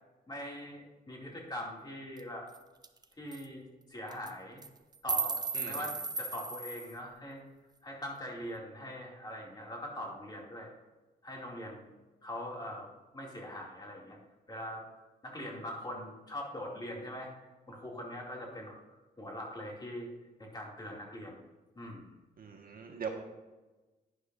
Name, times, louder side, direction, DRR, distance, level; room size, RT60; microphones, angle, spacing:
voice 1, 0.3-2.5 3.2-4.6 5.0-7.4 7.8-10.7 11.2-11.9 12.2-12.9 13.1-14.2 14.5-14.9 15.2-17.3 17.7-20.1 20.4-21.4 21.8-22.1, left 1 dB, 25° left, -2 dB, 2.4 m, -42 dB
sound 1, 2.2-2.3 2.5-2.6 2.8-3.0 3.3-3.4 4.1-4.3 4.6-6.9, right 4 dB, 25° right, 0.6 m, -35 dB
voice 2, 22.4-23.1, right 6 dB, 55° right, 2 dB, 1.4 m, -41 dB
11.5 x 10.0 x 2.6 m, 1.2 s
cardioid pair, 115°, 18 cm